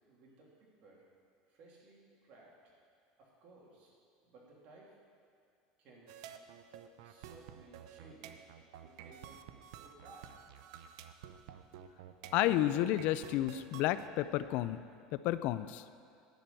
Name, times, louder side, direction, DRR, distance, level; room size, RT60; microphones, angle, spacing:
voice 1, 0.1-1.0 1.5-2.7 3.2-3.9 4.2-5.0 5.8-6.2 7.0-8.4 8.8-9.4 9.8-10.3, right 2 dB, 50° right, -4 dB, 3.1 m, -59 dB
sound 1, 6.1-14.1, right 9 dB, 80° right, 0.6 m, -51 dB
voice 2, 12.3-14.8 15.1-15.8, left 14 dB, 60° left, 14 dB, 0.4 m, -31 dB
10.5 x 6.1 x 8.3 m, 2.3 s
supercardioid pair, 130°, 3 cm